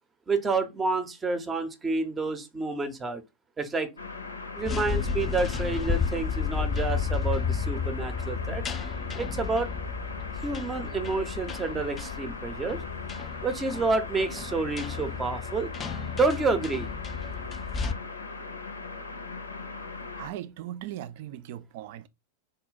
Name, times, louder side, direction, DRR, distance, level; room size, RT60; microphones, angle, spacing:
voice 1, 0.3-3.2 3.6-3.9 4.5-8.6 9.1-9.7 10.4-12.8 13.4-15.7 16.1-16.9, right 3 dB, 15° right, 0.7 m, -29 dB
sound 1, 4.0-20.3, left 4 dB, 75° left, 0.6 m, -39 dB
sound 2, 4.6-17.9, left 6 dB, 20° left, 0.4 m, -32 dB
voice 2, 20.2-22.1, right 12 dB, 50° right, 0.4 m, -38 dB
3.8 x 2.1 x 4.0 m
figure-of-eight pair, 90°, 0 cm